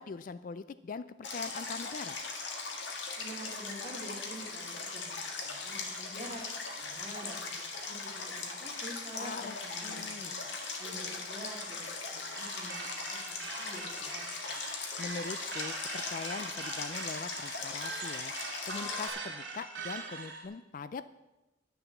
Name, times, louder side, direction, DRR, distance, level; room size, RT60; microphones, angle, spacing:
voice 1, 0.0-2.2 9.2-9.5 9.8-10.3 15.0-18.3 18.6-21.0, left 4 dB, 45° left, 14 dB, 0.3 m, -42 dB
Stream, 1.2-19.1, left 4 dB, 70° left, 1.8 m, -39 dB
voice 2, 3.2-6.4 6.7-10.4 10.8-14.5, right 1 dB, 30° right, -3 dB, 2.8 m, -47 dB
sound 1, 12.3-20.5, right 4 dB, 85° right, 2.8 m, -42 dB
10.5 x 6.9 x 7.0 m, 1.0 s
head